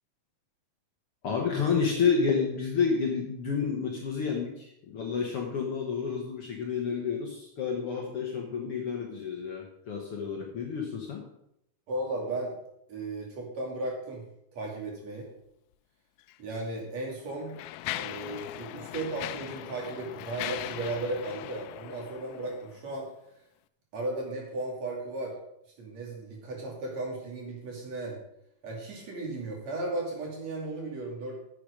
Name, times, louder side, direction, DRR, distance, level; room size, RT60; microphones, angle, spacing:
voice 1, 1.2-11.2, left 6 dB, 55° left, 0 dB, 1.8 m, -30 dB
voice 2, 11.9-12.5 12.9-14.2 14.5-15.3 16.4-17.6 17.9-23.1 23.9-25.3 25.8-28.2 28.6-31.5, right 2 dB, 55° right, -1 dB, 3.7 m, -35 dB
Mechanisms, 16.2-16.4 17.1-22.8, left 15 dB, 90° left, 2.2 m, -39 dB
10.0 x 7.8 x 5.2 m, 0.77 s
omnidirectional pair, 3.7 m